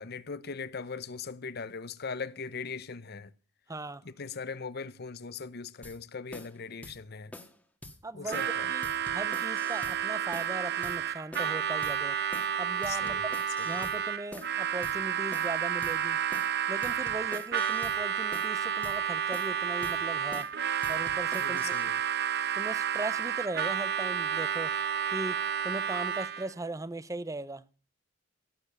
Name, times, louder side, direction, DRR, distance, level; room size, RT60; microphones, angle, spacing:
voice 1, 0.0-3.3 4.0-7.3 8.1-8.7 12.9-13.2 13.6-13.9 21.3-22.0, left 5 dB, 55° left, 0.8 m, -40 dB
voice 2, 3.7-4.0 8.0-8.4 8.7-8.9 9.1-12.2 12.6-13.3 13.6-16.2 16.7-20.5 20.9-21.8 22.5-24.7 25.1-27.6, right 2 dB, 15° right, 0.7 m, -38 dB
sound 1, 5.8-6.0 6.3-6.5 6.8-7.0 7.3-7.5 7.8-8.0 8.3-8.5 8.8-10.0 10.3-10.5 10.8-11.0 11.3-11.6 11.8-12.0 12.3-12.5 12.8-14.0 14.3-14.5 14.8-15.0 15.3-15.6 15.8-16.0 16.3-16.5 16.8-18.0 18.3-18.5 18.8-19.0 19.3-19.6 19.8-20.0 20.3-20.5 20.8-21.8, left 1 dB, 5° left, 1.6 m, -46 dB
Harmonica, 8.3-26.5, right 8 dB, 60° right, 0.8 m, -31 dB
17.0 x 7.1 x 6.6 m
head